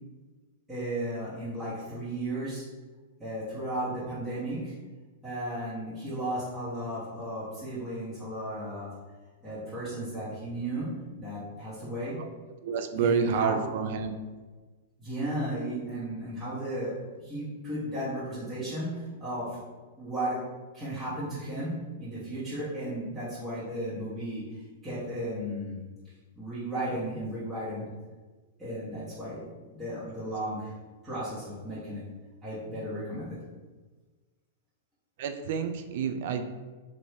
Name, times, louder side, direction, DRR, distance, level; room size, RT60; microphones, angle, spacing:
voice 1, 0.7-2.7 3.2-4.7 5.2-8.9 9.4-10.9 11.2-12.2 12.9-13.6 15.0-19.6 20.0-20.5 20.7-25.8 26.4-27.9 28.6-30.7 31.0-32.0 32.4-33.4, right 1 dB, 10° right, -13 dB, 1.2 m, -34 dB
voice 2, 12.6-14.1 35.2-36.5, right 6 dB, 55° right, 7 dB, 0.3 m, -29 dB
3.0 x 2.6 x 3.3 m, 1.3 s
figure-of-eight pair, 100°, 0 cm